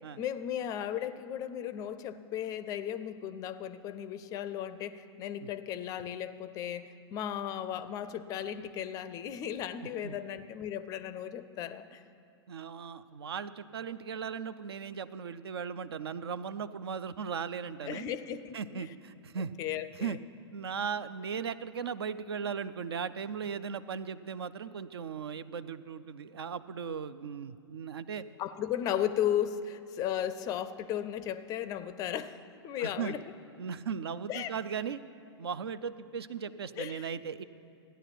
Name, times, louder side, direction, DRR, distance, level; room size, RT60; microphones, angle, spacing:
voice 1, 0.2-12.0 17.8-18.9 19.6-20.2 28.4-32.4 32.6-33.2 34.3-34.5 36.8-37.1, left 10 dB, 25° left, 14 dB, 0.4 m, -35 dB
voice 2, 12.5-18.1 18.5-19.5 20.0-20.2 20.5-28.2 32.8-33.1 33.6-35.0 35.4-37.4, right 6 dB, 65° right, 14 dB, 0.5 m, -37 dB
14.5 x 10.0 x 5.8 m, 2.6 s
figure-of-eight pair, 105°, 14 cm